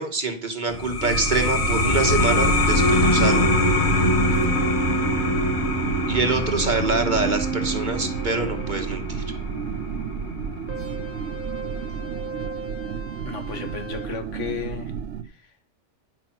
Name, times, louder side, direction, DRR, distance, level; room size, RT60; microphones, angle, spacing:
voice 1, 0.0-3.5 6.1-9.2, right 3 dB, 40° right, 4 dB, 1.7 m, -25 dB
sound 1, 0.7-11.9, left 2 dB, 45° left, 1.3 m, -24 dB
sound 2, 1.0-15.2, right 7 dB, 75° right, 1.1 m, -32 dB
sound 3, 2.7-8.8 10.7-14.1, right 7 dB, 10° right, 1.3 m, -34 dB
voice 2, 4.0-4.9 13.3-14.9 15.2-15.5, left 6 dB, 80° left, 6 dB, 1.9 m, -35 dB
10.5 x 6.1 x 5.9 m, 0.40 s
omnidirectional pair, 1.2 m